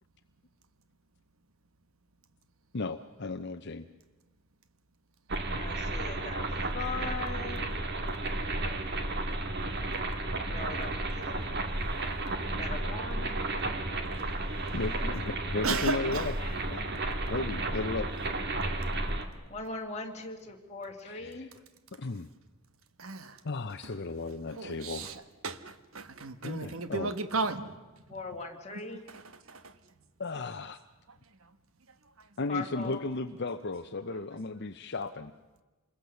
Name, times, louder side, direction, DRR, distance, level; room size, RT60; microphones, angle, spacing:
voice 1, 2.7-3.9 14.7-16.4 16.7-17.0 17.2-18.1 21.0-21.5 22.0-22.3 23.4-25.1 26.4-27.1 30.2-30.8 32.4-35.3, left 3 dB, 50° left, 0.7 m, -35 dB
sound 1, 5.3-19.3, right 2 dB, 50° right, 1.9 m, -33 dB
voice 2, 5.5-6.5 6.7-7.7 9.6-9.9 10.4-11.5 12.6-13.3 16.0-16.6 19.5-21.5 28.1-29.0 32.5-33.0, left 3 dB, 30° left, 2.6 m, -40 dB
voice 3, 15.6-16.2 23.0-23.3 24.6-25.1 25.4-27.7, right 3 dB, 70° right, 1.3 m, -33 dB
27.5 x 21.5 x 7.0 m
head